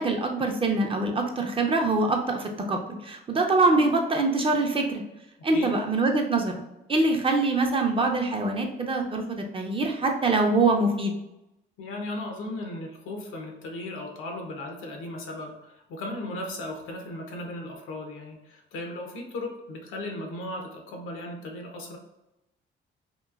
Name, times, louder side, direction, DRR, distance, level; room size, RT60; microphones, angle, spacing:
voice 1, 0.0-5.0 5.4-6.5 6.9-11.1, right 3 dB, 25° right, 3 dB, 0.5 m, -24 dB
voice 2, 11.8-22.0, left 1 dB, 85° left, 2 dB, 0.7 m, -36 dB
2.9 x 2.4 x 2.4 m, 0.90 s
cardioid pair, 90°, 20 cm